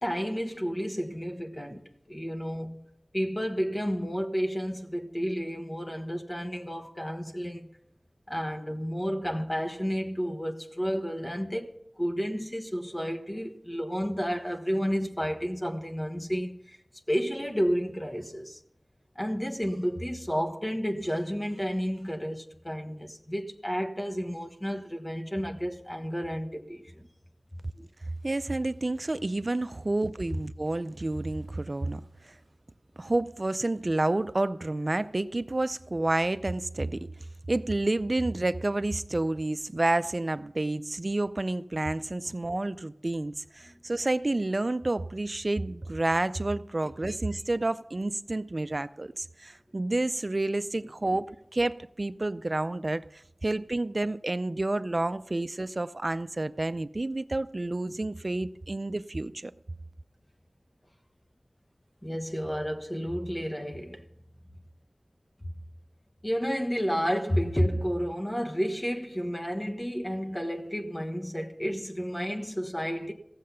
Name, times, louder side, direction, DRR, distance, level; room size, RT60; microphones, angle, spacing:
voice 1, 0.0-2.8 3.1-7.7 8.3-16.8 17.1-18.6 19.1-27.1 42.2-42.3 47.1-47.2 51.1-51.2 62.0-64.0 65.4-65.5 66.2-73.1, equal, 25° left, 1.3 m, -31 dB
voice 2, 28.2-32.3 33.0-37.1 37.5-59.5, right 2 dB, 50° right, 0.5 m, -29 dB
15.5 x 7.5 x 5.7 m
wide cardioid pair, 50°, 0 cm